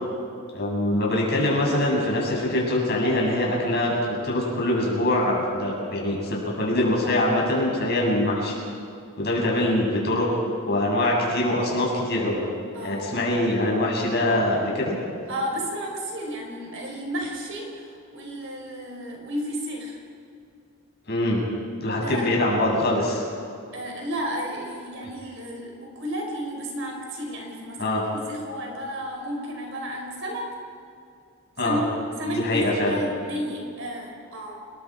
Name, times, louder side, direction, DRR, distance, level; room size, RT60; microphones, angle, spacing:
voice 1, 0.5-8.6 9.2-10.3 10.6-12.4 12.8-14.9 21.1-21.4 21.8-23.3 27.8-28.0 31.6-31.8 32.4-33.0, left 1 dB, 50° left, -3 dB, 6.9 m, -23 dB
voice 2, 12.7-13.2 15.3-20.0 22.0-22.3 23.7-30.5 31.6-31.9 32.2-34.6, equal, 60° right, 1 dB, 5.2 m, -32 dB
30.0 x 21.0 x 5.0 m, 2.4 s
head